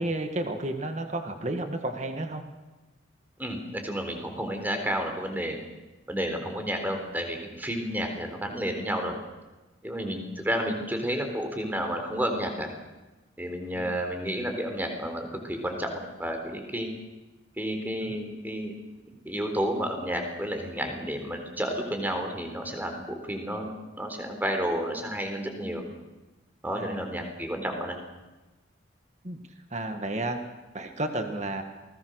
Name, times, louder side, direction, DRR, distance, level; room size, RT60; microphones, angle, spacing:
voice 1, 0.0-2.4 13.7-14.0 18.0-18.1 26.8-27.2 29.2-29.4 29.7-30.4 30.7-31.6, right 1 dB, 35° right, 6 dB, 1.8 m, -32 dB
voice 2, 3.4-5.6 6.1-9.1 9.8-12.7 13.4-16.9 17.6-18.7 19.2-25.8 26.6-28.0, equal, 10° right, 4 dB, 3.8 m, -31 dB
28.5 x 20.5 x 6.5 m, 1.1 s
head